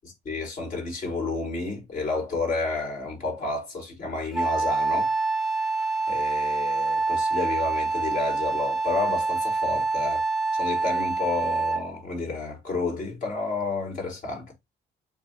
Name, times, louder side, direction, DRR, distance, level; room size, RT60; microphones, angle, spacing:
voice 1, 0.0-5.1 6.1-10.2 10.6-14.5, left 3 dB, 50° left, 3.4 m, -30 dB
Wind instrument woodwind instrument, 4.3-12.0, right 3 dB, ahead, 0.5 m, -26 dB
7.0 x 2.7 x 2.8 m
cardioid pair, 110°, 17 cm